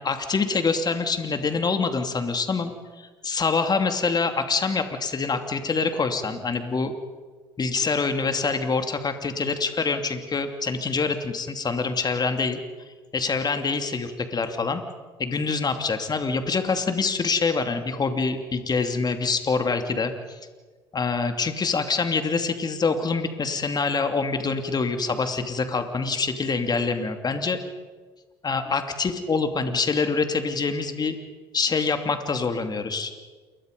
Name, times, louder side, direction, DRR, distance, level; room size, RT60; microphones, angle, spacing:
voice 1, 0.0-2.7 3.0-6.9 7.6-12.6 13.1-14.8 15.2-20.4 20.9-27.6 28.4-31.1 31.5-33.1, left 4 dB, 30° left, 7 dB, 2.8 m, -25 dB
28.5 x 23.5 x 5.3 m, 1.4 s
hypercardioid pair, 65°, 13 cm